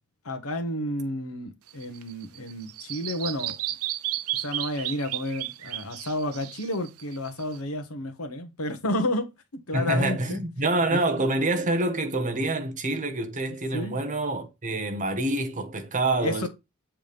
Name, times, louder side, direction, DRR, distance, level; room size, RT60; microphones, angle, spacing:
voice 1, 0.2-3.6 4.3-10.4 10.9-11.0 13.7-14.0 16.2-16.5, left 1 dB, 90° left, 1.3 m, -31 dB
Bird vocalization bird call bird song, 1.7-7.6, right 14 dB, 75° right, 0.5 m, -33 dB
voice 2, 9.7-16.5, right 2 dB, 35° right, 1.3 m, -26 dB
7.4 x 3.4 x 5.3 m
head